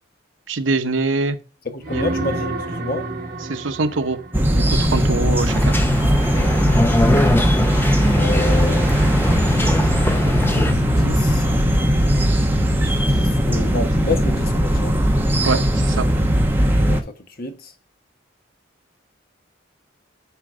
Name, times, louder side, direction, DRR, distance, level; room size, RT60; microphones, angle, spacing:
voice 1, 0.5-1.4 1.9-2.0 3.5-4.2 4.5-5.8 15.4-16.1, right 3 dB, 80° right, 0.9 m, -23 dB
voice 2, 1.6-3.1 6.3-6.8 8.2-9.7 10.5-11.5 12.8-15.0 16.8-17.7, left 3 dB, 50° left, 1.1 m, -30 dB
sound 1, 1.8-5.6 10.2-10.3, right 2 dB, 45° right, 2.3 m, -30 dB
sound 2, 4.3-17.0, equal, 10° right, 1.1 m, -18 dB
sound 3, 5.5-10.7, left 1 dB, 10° left, 0.7 m, -22 dB
10.5 x 4.2 x 5.0 m
head